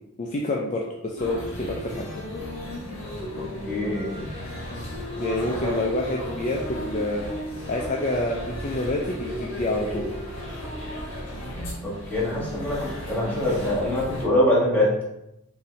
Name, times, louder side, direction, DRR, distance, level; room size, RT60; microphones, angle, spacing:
voice 1, 0.2-2.1 5.2-10.1, left 2 dB, 35° left, -2 dB, 0.4 m, -28 dB
sound 1, 1.2-14.2, left 1 dB, 65° left, 1.4 m, -34 dB
voice 2, 3.7-4.2 5.6-5.7 11.8-14.9, left 1 dB, 10° left, -7 dB, 1.4 m, -24 dB
5.5 x 2.7 x 3.2 m, 0.85 s
head